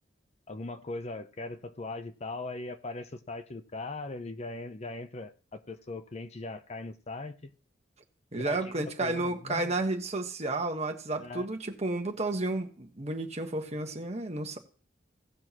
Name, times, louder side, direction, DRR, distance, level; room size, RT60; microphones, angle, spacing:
voice 1, 0.5-7.5 8.3-9.7 11.2-11.5, left 2 dB, 35° left, 0.7 m, -40 dB
voice 2, 8.3-14.6, right 2 dB, 35° right, 1.4 m, -32 dB
17.5 x 6.3 x 3.0 m
head